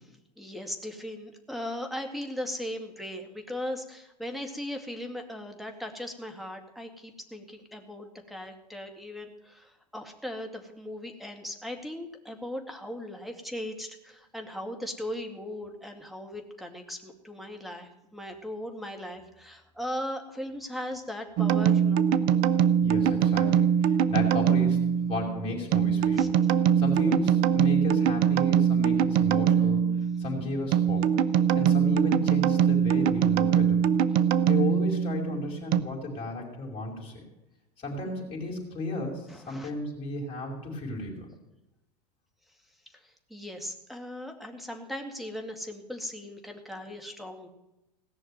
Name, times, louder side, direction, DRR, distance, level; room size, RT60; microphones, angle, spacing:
voice 1, 0.4-22.1 26.2-26.3 39.3-39.7 43.3-47.5, left 1 dB, ahead, 4 dB, 2.3 m, -38 dB
sound 1, 21.4-35.8, right 8 dB, 45° right, 0.8 m, -23 dB
voice 2, 22.8-26.4 26.8-31.1 31.5-33.9 34.5-37.2 37.8-41.3, left 2 dB, 25° left, -2 dB, 5.4 m, -34 dB
17.5 x 6.5 x 9.2 m, 0.93 s
hypercardioid pair, 95°, 21 cm